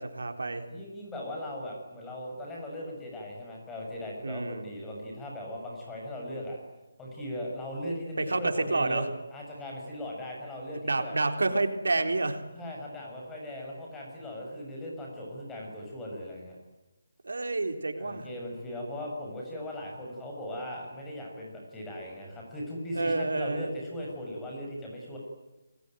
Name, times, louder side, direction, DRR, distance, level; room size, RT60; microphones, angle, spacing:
voice 1, 0.0-0.7 4.2-4.7 8.2-9.1 10.8-12.4 17.2-18.3 22.9-23.7, right 2 dB, 90° right, 6 dB, 3.9 m, -29 dB
voice 2, 0.7-6.6 7.0-9.0 9.3-11.2 12.6-16.6 18.0-25.2, left 1 dB, 10° left, -2 dB, 7.1 m, -38 dB
29.5 x 21.0 x 9.3 m, 1.1 s
hypercardioid pair, 170°, 0 cm